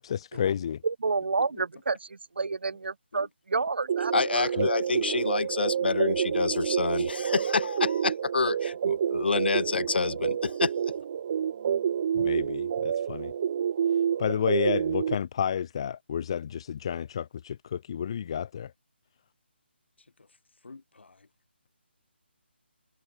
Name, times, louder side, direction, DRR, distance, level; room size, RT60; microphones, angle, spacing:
voice 1, 0.0-0.8 4.6-4.7 12.1-13.3 14.2-18.7, left 8 dB, 30° left, 0.7 m, -31 dB
voice 2, 0.8-2.0 2.4-4.5, right 4 dB, 65° right, 3.1 m, -29 dB
sound 1, 3.9-15.2, right 8 dB, 30° right, 1.1 m, -28 dB
voice 3, 4.1-10.7, left 4 dB, 60° left, 2.3 m, -28 dB
voice 4, 20.0-20.4 20.6-21.3, left 3 dB, 75° left, 7.9 m, -49 dB
hypercardioid pair, 170°, 6 cm